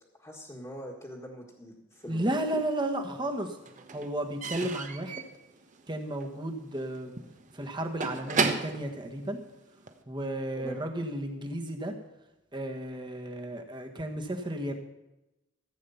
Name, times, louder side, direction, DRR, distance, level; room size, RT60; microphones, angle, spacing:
voice 1, 0.2-2.3 10.6-10.8, equal, 15° left, -2 dB, 1.7 m, -43 dB
voice 2, 2.1-3.6 3.9-5.2 5.9-7.2 7.5-9.4 10.1-12.0 12.5-14.7, right 1 dB, 25° right, 4 dB, 1.4 m, -33 dB
Slam / Squeak / Wood, 2.2-3.0 3.2-10.0, right 4 dB, 40° right, 1.0 m, -35 dB
15.0 x 8.6 x 5.7 m, 0.96 s
head